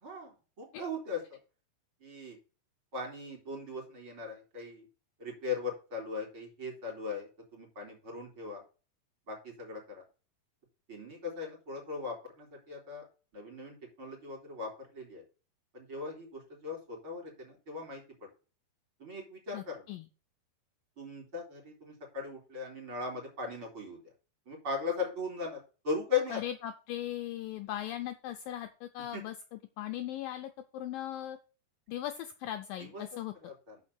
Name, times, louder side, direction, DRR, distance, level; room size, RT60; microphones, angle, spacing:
voice 1, 0.0-1.4 2.0-2.4 2.9-4.9 5.2-8.6 9.3-10.0 10.9-13.1 13.3-15.2 15.7-18.3 19.0-19.9 21.0-24.0 24.5-26.4 29.1-29.2 32.8-33.0 33.4-33.8, left 4 dB, 35° right, 0 dB, 3.5 m, -39 dB
voice 2, 19.5-20.1 26.3-31.4 31.9-33.3, left 12 dB, 85° left, 6 dB, 2.0 m, -39 dB
6.5 x 6.2 x 7.0 m, 0.34 s
omnidirectional pair, 4.8 m